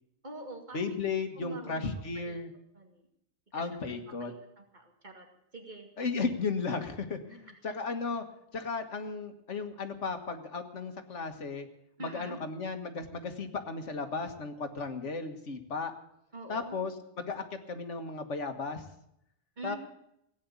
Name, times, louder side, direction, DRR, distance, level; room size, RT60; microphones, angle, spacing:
voice 1, 0.2-1.0 1.4-2.4 2.7-3.1 3.5-5.3 5.5-5.9 12.0-12.4 16.3-16.8 19.6-19.8, right 2 dB, 40° right, 3 dB, 2.5 m, -45 dB
voice 2, 0.7-2.5 3.5-4.3 6.0-8.2 8.5-11.7 12.0-15.9 16.5-18.8 19.6-19.8, left 4 dB, 85° left, 7 dB, 1.9 m, -35 dB
16.5 x 9.5 x 8.4 m, 0.78 s
omnidirectional pair, 1.2 m